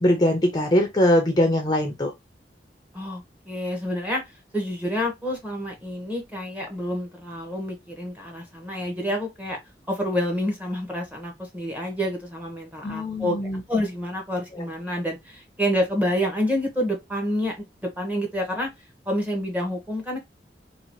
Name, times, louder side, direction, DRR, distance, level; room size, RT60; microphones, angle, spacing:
voice 1, 0.0-2.1 12.8-13.6, left 1 dB, 25° left, 0.6 m, -21 dB
voice 2, 2.9-4.2 4.5-9.6 9.9-13.4 13.7-17.6 18.0-18.7 19.1-20.2, equal, 10° right, 1.0 m, -28 dB
2.9 x 2.9 x 2.9 m
head